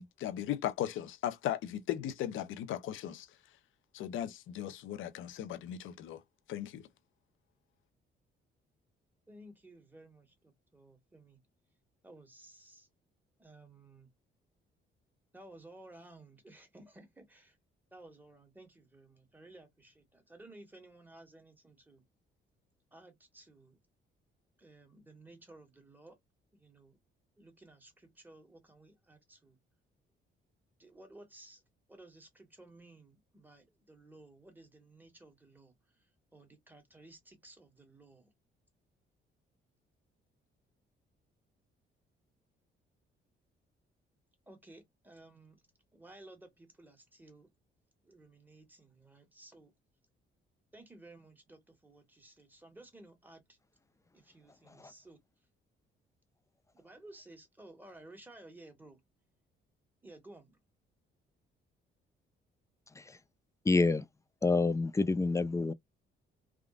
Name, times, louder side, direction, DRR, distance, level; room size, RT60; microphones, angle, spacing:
voice 1, 0.0-3.3 3.9-6.2 6.5-6.9, left 11 dB, 80° left, 0.7 m, -37 dB
voice 2, 9.3-11.4 12.0-12.9 13.4-14.1 15.3-17.6 17.9-22.0 22.9-23.8 24.6-26.2 26.5-27.0 27.4-29.6 30.8-31.6 31.9-35.7 36.3-38.3 44.5-45.6 45.9-47.5 48.0-49.7 50.7-53.6 54.1-55.2 56.7-59.0 60.0-60.6, right 2 dB, 10° right, 1.6 m, -56 dB
voice 3, 63.7-64.1 64.4-65.7, left 3 dB, 15° left, 0.4 m, -28 dB
3.6 x 2.3 x 2.4 m
cardioid pair, 90°, 20 cm